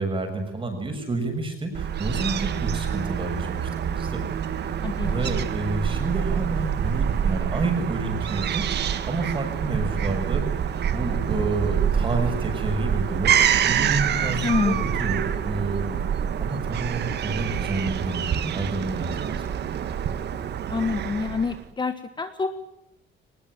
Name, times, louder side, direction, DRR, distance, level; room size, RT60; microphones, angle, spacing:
voice 1, 0.0-4.2 5.0-8.6 9.1-10.4 10.9-16.1 16.4-19.4, right 2 dB, 25° right, 5 dB, 6.8 m, -29 dB
Fowl / Gull seagull, 1.7-21.6, right 8 dB, 55° right, 1.6 m, -26 dB
voice 2, 4.8-5.3 14.4-14.9 20.7-22.5, left 4 dB, 20° left, 8 dB, 1.4 m, -27 dB
23.5 x 20.0 x 9.2 m, 0.84 s
cardioid pair, 165°, 21 cm